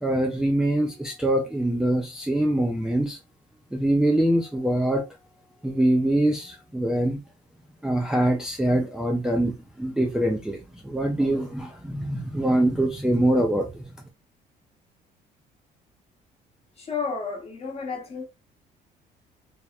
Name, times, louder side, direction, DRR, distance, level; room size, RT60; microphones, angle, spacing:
voice 1, 0.0-3.2 3.7-5.1 5.6-7.2 7.8-10.6 10.8-13.8, right 1 dB, 5° right, 0.4 m, -24 dB
voice 2, 16.8-18.2, left 5 dB, 35° left, 1.0 m, -31 dB
2.8 x 2.0 x 2.3 m
cardioid pair, 110°, 17 cm